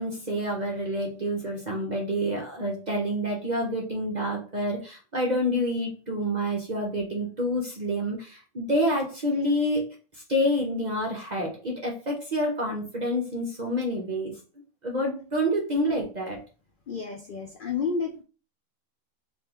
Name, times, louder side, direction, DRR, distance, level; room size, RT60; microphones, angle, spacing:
voice 1, 0.0-9.9 10.3-14.3 14.8-16.4, equal, 45° right, 0 dB, 0.6 m, -28 dB
voice 2, 16.9-18.2, left 5 dB, 65° left, 2 dB, 0.5 m, -30 dB
3.7 x 2.6 x 2.9 m, 0.35 s
omnidirectional pair, 1.4 m